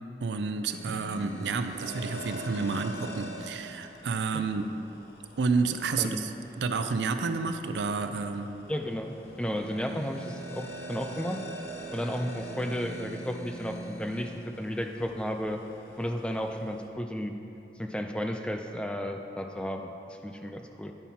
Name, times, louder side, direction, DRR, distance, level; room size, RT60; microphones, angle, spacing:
voice 1, 0.2-4.7 5.4-6.3 6.6-8.5, right 4 dB, 85° right, 8 dB, 0.4 m, -30 dB
sound 1, 0.7-16.9, right 1 dB, 60° left, 0.8 m, -44 dB
voice 2, 8.7-11.4 11.9-15.6 16.0-17.3 17.8-20.9, equal, 5° left, 4 dB, 0.3 m, -33 dB
9.1 x 5.6 x 4.2 m, 2.8 s
head